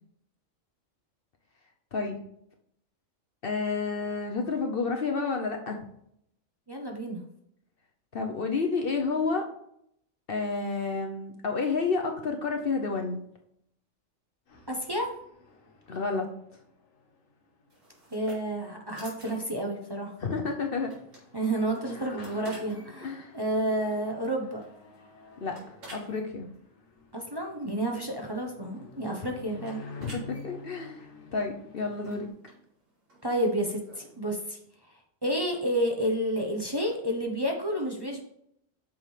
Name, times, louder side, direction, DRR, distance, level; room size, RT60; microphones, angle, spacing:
voice 1, 3.4-5.8 8.1-9.5 10.3-13.2 15.9-16.3 20.2-20.9 23.0-23.3 25.4-25.6 25.9-26.5 30.0-31.1 31.3-32.3, left 4 dB, 50° left, 3 dB, 0.9 m, -30 dB
voice 2, 6.7-7.2 14.7-15.1 18.1-20.1 21.3-24.6 27.1-29.8 33.2-34.6 34.9-35.0 35.2-38.2, right 1 dB, 20° right, 1 dB, 0.9 m, -30 dB
sound 1, 14.5-32.3, left 3 dB, 75° left, 1.8 m, -49 dB
sound 2, 17.7-34.2, right 1 dB, 70° right, 3.1 m, -53 dB
8.6 x 6.3 x 3.3 m, 0.74 s
omnidirectional pair, 1.4 m